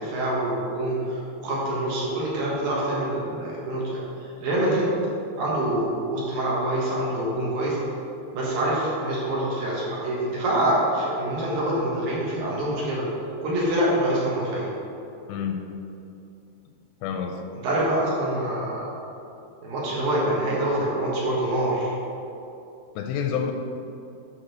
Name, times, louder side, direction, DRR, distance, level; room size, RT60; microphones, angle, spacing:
voice 1, 0.0-4.9 5.4-7.8 8.3-13.0 13.4-14.7 17.6-18.9 19.6-21.9, right 1 dB, 65° right, -6 dB, 2.9 m, -25 dB
voice 2, 15.3-15.7 17.0-17.4 23.0-23.5, left 7 dB, 85° left, 5 dB, 2.7 m, -28 dB
9.0 x 4.1 x 6.5 m, 2.7 s
omnidirectional pair, 5.0 m